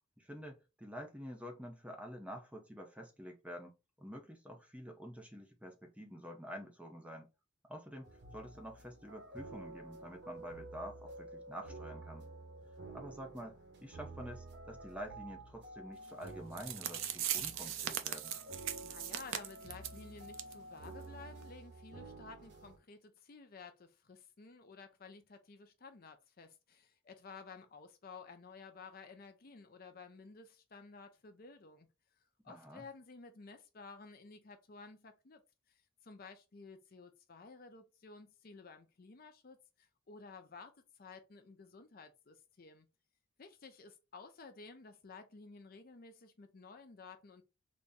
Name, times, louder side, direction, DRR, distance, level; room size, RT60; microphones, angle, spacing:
voice 1, 0.2-7.3 7.7-12.3 12.9-13.6 13.8-18.3 32.5-32.9, equal, 5° right, 0.6 m, -48 dB
sound 1, 8.0-22.8, right 2 dB, 60° right, 0.9 m, -51 dB
sound 2, 16.3-16.4 16.6-20.0 20.3-20.5 20.8-20.9 21.4-21.5, right 10 dB, 85° right, 0.5 m, -39 dB
voice 2, 18.8-31.9 32.4-35.4 35.7-40.7 41.0-42.9 43.4-47.4, left 4 dB, 50° left, 0.5 m, -54 dB
4.0 x 2.0 x 3.5 m
head